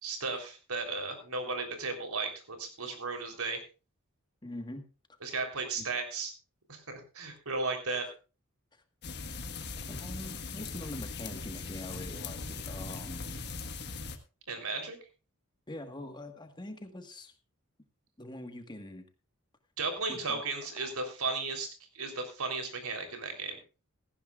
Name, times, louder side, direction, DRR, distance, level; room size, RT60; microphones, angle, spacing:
voice 1, 0.0-3.6 5.2-6.3 6.7-8.1 14.5-15.0 19.8-21.7 21.9-23.6, right 3 dB, 85° right, 5 dB, 3.6 m, -35 dB
voice 2, 4.4-4.8 5.8-5.9 8.0-8.1 8.7-8.8 9.8-13.4 15.7-17.3 18.2-19.0 20.1-20.4 20.8-20.9, left 1 dB, 20° left, 6 dB, 1.5 m, -44 dB
sound 1, 9.0-14.2, left 4 dB, 50° left, 1.4 m, -40 dB
17.0 x 14.5 x 2.4 m, 0.33 s
head